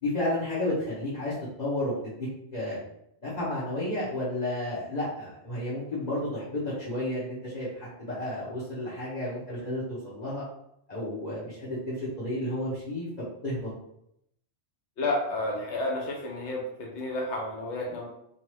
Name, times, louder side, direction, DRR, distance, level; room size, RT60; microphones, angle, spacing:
voice 1, 0.0-2.1 2.5-2.8 3.2-10.4 10.9-13.1 13.4-13.7, left 1 dB, 40° left, -9 dB, 0.9 m, -32 dB
voice 2, 15.0-18.1, left 2 dB, 80° left, -1 dB, 1.0 m, -31 dB
2.8 x 2.3 x 3.0 m, 0.75 s
omnidirectional pair, 1.2 m